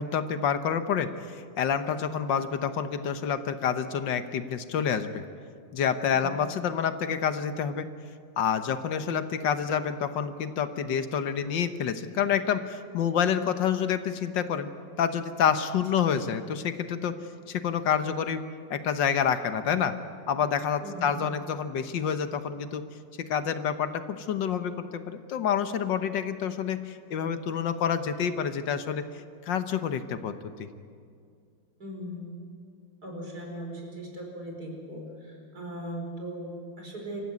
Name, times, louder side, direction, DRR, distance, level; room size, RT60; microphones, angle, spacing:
voice 1, 0.0-5.2 5.7-7.9 8.4-14.7 15.0-17.1 17.5-18.4 18.7-19.9 20.3-22.8 23.3-29.0 29.5-30.7, left 7 dB, 80° left, 10 dB, 1.7 m, -28 dB
voice 2, 6.1-6.4 20.8-21.3 31.8-32.4 33.0-37.2, equal, 55° right, 1 dB, 5.4 m, -39 dB
26.0 x 14.5 x 9.6 m, 2.2 s
omnidirectional pair, 2.0 m